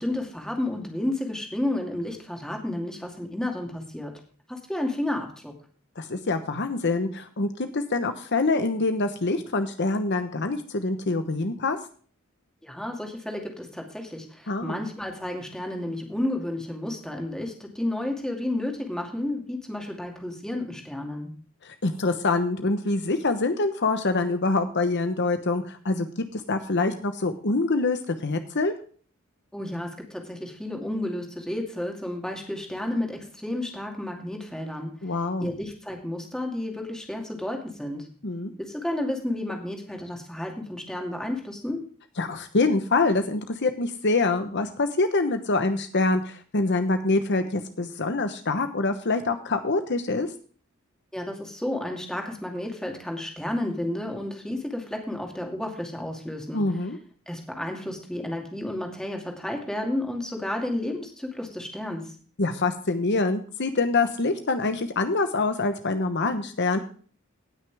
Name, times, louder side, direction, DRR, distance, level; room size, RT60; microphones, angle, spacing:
voice 1, 0.0-4.2 4.5-5.5 12.6-21.3 29.5-35.0 35.4-38.1 38.6-41.8 51.1-56.6 57.3-62.0, left 1 dB, 5° left, 2 dB, 2.5 m, -31 dB
voice 2, 6.0-11.8 14.5-14.8 21.6-26.1 26.3-28.7 35.0-35.5 38.2-38.5 42.2-50.3 56.5-57.0 62.4-66.8, left 3 dB, 55° left, 8 dB, 1.0 m, -25 dB
18.0 x 6.5 x 3.5 m, 0.42 s
head